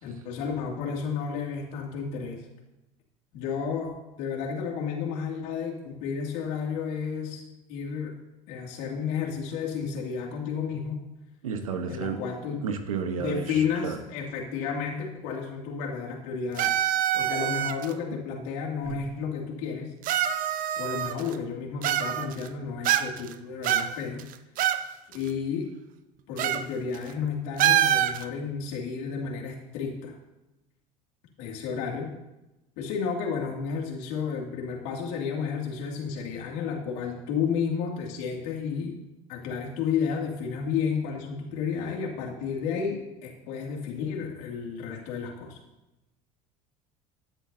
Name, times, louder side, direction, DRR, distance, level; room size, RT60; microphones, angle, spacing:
voice 1, 0.0-2.4 3.3-7.4 7.7-8.1 8.5-11.0 11.9-12.6 13.2-16.8 17.1-19.9 20.8-24.2 25.1-25.7 26.3-30.1 31.4-32.1 32.8-38.9 39.3-45.6, left 6 dB, 70° left, 0 dB, 2.5 m, -32 dB
voice 2, 11.4-12.2 12.6-14.0 18.9-19.0, right 6 dB, 90° right, 7 dB, 1.2 m, -32 dB
sound 1, 16.6-17.9 18.9-19.0 20.0-21.3 21.8-22.5 22.8-23.3 23.6-24.8 25.1-25.2 26.4-26.6 26.9-27.1 27.6-28.2, right 11 dB, 55° right, 0.7 m, -25 dB
15.5 x 9.9 x 2.8 m, 0.97 s
hypercardioid pair, 75°, 17 cm